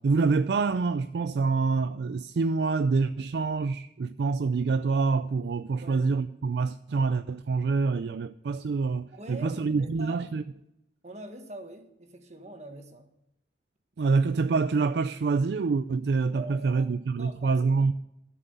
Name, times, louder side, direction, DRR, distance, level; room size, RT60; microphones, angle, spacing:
voice 1, 0.0-10.4 14.0-17.9, right 4 dB, 65° right, 0.4 m, -26 dB
voice 2, 5.8-6.1 9.1-10.2 11.0-13.1 16.3-16.9 17.2-17.9, right 1 dB, 40° right, 1.5 m, -43 dB
12.0 x 7.4 x 6.9 m
head